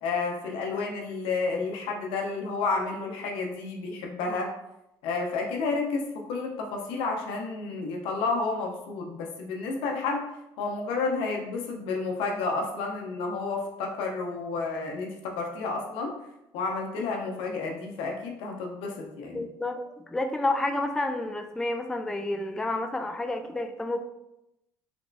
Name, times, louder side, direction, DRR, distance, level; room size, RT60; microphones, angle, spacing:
voice 1, 0.0-4.5 5.0-10.3 10.6-16.1 16.5-19.5, left 4 dB, 85° left, 1 dB, 0.7 m, -31 dB
voice 2, 19.3-24.0, left 2 dB, 5° left, 5 dB, 0.3 m, -30 dB
3.4 x 3.0 x 2.6 m, 0.88 s
cardioid pair, 95°, 9 cm